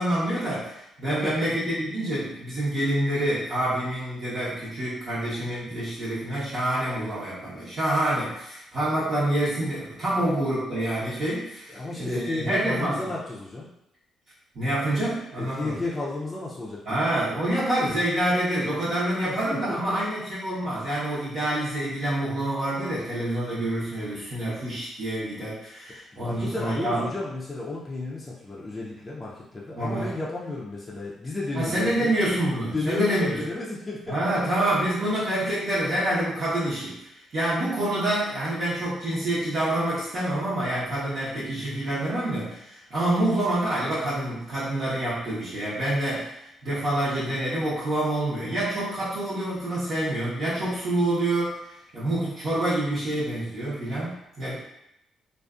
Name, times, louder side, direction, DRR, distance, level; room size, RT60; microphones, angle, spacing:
voice 1, 0.0-13.0 14.5-15.8 16.8-27.0 29.7-30.1 31.5-33.4 34.1-54.6, right 1 dB, 55° right, -10 dB, 0.9 m, -27 dB
voice 2, 1.1-1.5 11.7-13.7 15.4-17.1 19.3-20.0 26.1-32.1 32.7-34.9, left 2 dB, 25° left, -5 dB, 0.5 m, -33 dB
2.5 x 2.4 x 2.3 m, 0.84 s
cardioid pair, 90°, 0 cm